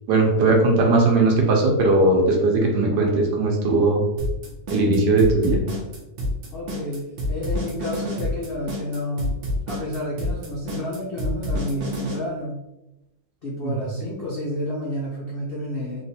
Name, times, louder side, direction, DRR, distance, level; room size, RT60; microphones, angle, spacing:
voice 1, 0.1-4.0 4.7-5.6 13.6-13.7, right 2 dB, 70° right, 1 dB, 1.3 m, -18 dB
sound 1, 4.2-12.2, left 1 dB, 55° right, 0.9 m, -27 dB
voice 2, 6.5-12.6 13.4-16.0, left 1 dB, 70° left, -5 dB, 0.5 m, -30 dB
3.0 x 3.0 x 2.8 m, 0.93 s
omnidirectional pair, 2.0 m